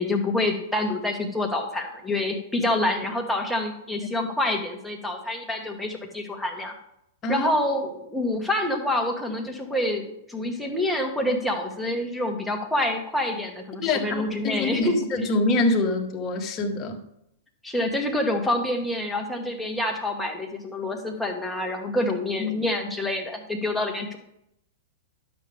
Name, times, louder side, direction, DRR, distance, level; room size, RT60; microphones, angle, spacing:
voice 1, 0.0-6.7 7.3-15.0 17.6-24.2, left 1 dB, 5° left, 1 dB, 1.7 m, -27 dB
voice 2, 13.8-17.0 22.4-22.5, left 2 dB, 30° left, 2 dB, 1.7 m, -25 dB
12.0 x 6.9 x 3.6 m, 0.78 s
figure-of-eight pair, 105°, 0 cm